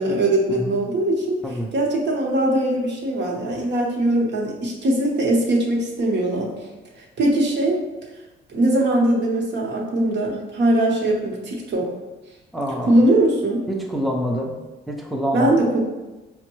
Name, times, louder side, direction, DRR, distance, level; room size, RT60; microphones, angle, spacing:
voice 1, 0.0-6.5 7.0-7.8 8.5-11.9 12.8-13.6 15.3-15.8, right 1 dB, 60° right, -1 dB, 1.0 m, -21 dB
voice 2, 12.5-13.0 13.7-14.6 14.9-15.6, equal, ahead, 0 dB, 0.5 m, -26 dB
5.1 x 2.2 x 3.0 m, 1.1 s
cardioid pair, 90°, 20 cm